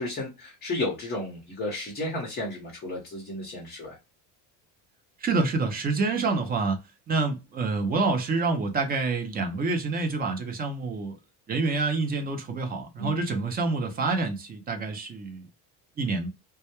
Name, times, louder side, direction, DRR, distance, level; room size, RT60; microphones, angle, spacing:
voice 1, 0.0-4.0 13.0-13.2, left 2 dB, 25° left, 0.7 m, -33 dB
voice 2, 5.2-6.8 7.1-11.2 11.5-15.4 16.0-16.3, right 3 dB, 25° right, 0.4 m, -27 dB
2.2 x 2.1 x 2.8 m
cardioid pair, 145°, 40 cm